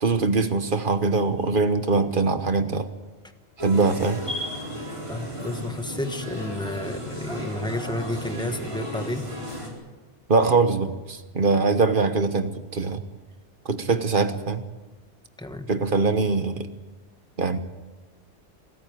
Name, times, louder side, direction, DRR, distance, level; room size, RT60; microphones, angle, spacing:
voice 1, 0.0-2.9 3.6-4.2 10.3-13.0 13.6-14.6 15.7-16.7 17.4-17.6, right 4 dB, 50° right, 10 dB, 1.4 m, -22 dB
sound 1, 3.6-9.7, equal, 25° right, 4.5 m, -34 dB
voice 2, 5.1-9.2 15.4-15.7, left 1 dB, 5° left, 8 dB, 1.3 m, -31 dB
24.5 x 13.5 x 9.3 m, 1.2 s
omnidirectional pair, 1.2 m